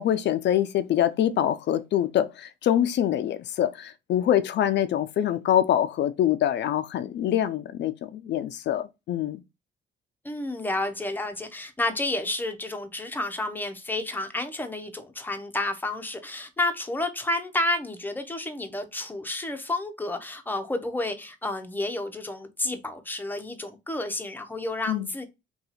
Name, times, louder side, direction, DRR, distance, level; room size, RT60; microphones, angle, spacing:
voice 1, 0.0-9.4 24.9-25.1, left 11 dB, 60° left, 0.4 m, -25 dB
voice 2, 10.2-25.3, left 2 dB, 10° left, 0.7 m, -30 dB
2.8 x 2.3 x 4.0 m
cardioid pair, 90°, 20 cm